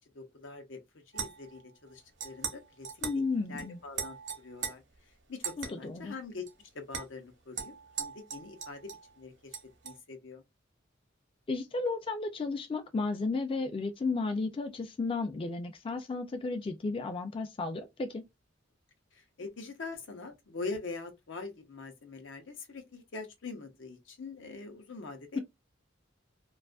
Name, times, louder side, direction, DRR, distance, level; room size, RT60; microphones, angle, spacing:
voice 1, 0.1-0.8 1.1-2.9 3.5-4.8 5.3-6.4 6.7-9.6 9.8-10.4 19.1-25.4, left 3 dB, 80° left, 0.7 m, -43 dB
sound 1, 1.1-1.6 2.2-2.6 2.8-3.2 3.6-3.7 3.9-4.7 5.4-5.7 6.5-6.6 6.9-7.0 7.6-9.1 9.5-10.0, right 7 dB, 65° right, 0.7 m, -39 dB
voice 2, 3.0-3.8 5.6-6.1 11.5-18.2, left 3 dB, 30° left, 0.3 m, -33 dB
2.5 x 2.3 x 2.3 m
head